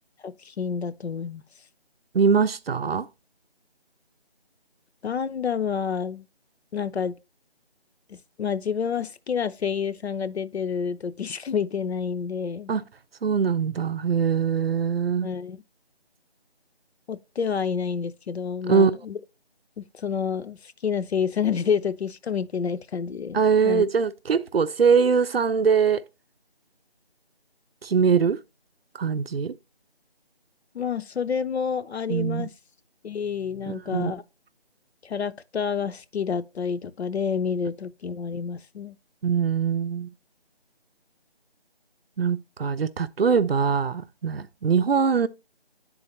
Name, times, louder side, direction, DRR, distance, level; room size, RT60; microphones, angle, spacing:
voice 1, 0.2-1.4 5.0-6.3 6.7-7.1 8.1-12.7 15.2-15.6 17.1-19.2 19.8-23.4 23.6-23.8 30.7-32.5 33.0-34.2 35.0-39.0, left 6 dB, 85° left, 0.6 m, -29 dB
voice 2, 2.1-3.1 12.7-12.8 13.2-15.3 18.7-18.9 23.3-26.0 27.8-28.4 28.9-29.6 32.1-32.5 33.7-34.1 39.2-40.1 42.2-45.3, right 6 dB, 65° right, 0.5 m, -22 dB
9.8 x 3.9 x 2.9 m
figure-of-eight pair, 175°, 32 cm